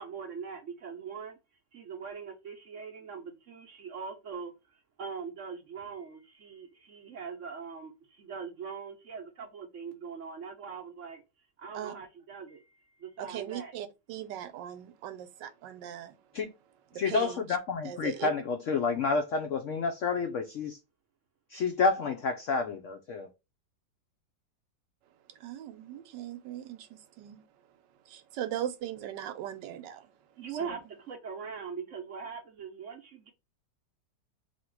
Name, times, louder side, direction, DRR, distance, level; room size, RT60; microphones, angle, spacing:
voice 1, 0.0-1.4 1.7-4.5 5.0-11.2 11.6-13.7 30.4-33.3, right 6 dB, 60° right, 0.8 m, -41 dB
voice 2, 13.2-16.2 16.9-17.4 17.8-18.3 25.3-27.5 28.0-30.1 30.5-30.8, right 11 dB, 75° right, 1.2 m, -39 dB
voice 3, 16.9-20.8 21.5-23.3, left 4 dB, 80° left, 0.6 m, -29 dB
2.9 x 2.8 x 4.5 m
omnidirectional pair, 2.0 m